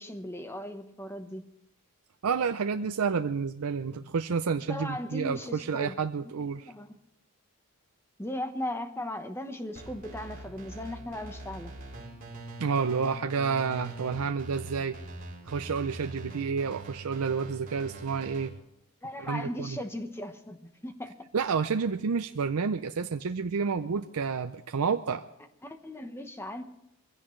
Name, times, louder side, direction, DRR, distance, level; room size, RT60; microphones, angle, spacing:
voice 1, 0.0-1.4 4.7-6.0 6.6-7.0 8.2-11.7 19.0-21.1 23.8-23.9 25.6-26.6, left 1 dB, 10° left, 7 dB, 1.0 m, -37 dB
voice 2, 2.2-6.7 12.6-15.0 15.5-18.5 19.2-19.8 21.3-25.2, right 5 dB, 80° right, 7 dB, 0.5 m, -30 dB
sound 1, 9.7-18.5, right 2 dB, 40° right, 4.4 m, -43 dB
23.0 x 16.0 x 3.2 m, 0.83 s
head